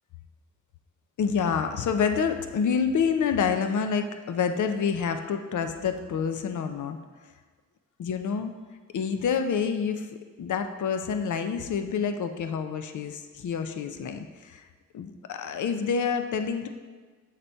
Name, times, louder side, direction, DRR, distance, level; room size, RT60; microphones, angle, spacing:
voice 1, 1.2-7.0 8.0-8.6 8.9-10.1 10.4-14.7 14.9-16.7, left 6 dB, 70° left, 7 dB, 0.5 m, -28 dB
7.6 x 4.1 x 4.4 m, 1.4 s
wide cardioid pair, 100°, 31 cm